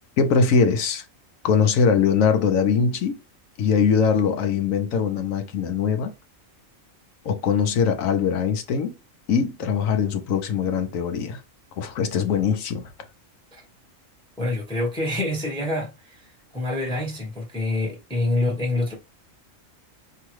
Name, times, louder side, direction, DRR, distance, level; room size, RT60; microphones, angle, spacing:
voice 1, 0.2-1.0 1.4-3.2 3.6-6.1 7.2-8.9 9.3-11.4 11.8-12.9, left 6 dB, 80° left, 1.1 m, -22 dB
voice 2, 14.4-16.3 16.5-18.9, left 2 dB, 5° left, 1.0 m, -26 dB
4.9 x 2.7 x 3.0 m
omnidirectional pair, 1.4 m